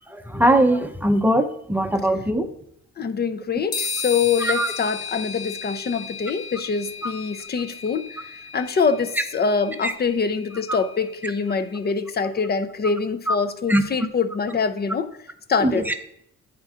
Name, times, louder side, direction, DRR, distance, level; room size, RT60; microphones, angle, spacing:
voice 1, 0.1-2.5 4.4-4.7 7.0-7.1 9.8-9.9 13.3-13.4 13.7-13.8 15.6-15.9, right 1 dB, 5° right, 7 dB, 0.7 m, -20 dB
voice 2, 3.0-15.1 15.5-15.9, left 5 dB, 35° left, 11 dB, 0.6 m, -24 dB
sound 1, 3.7-11.4, left 5 dB, 60° left, 1.6 m, -35 dB
9.4 x 4.4 x 3.6 m, 0.73 s
cardioid pair, 90°, 30 cm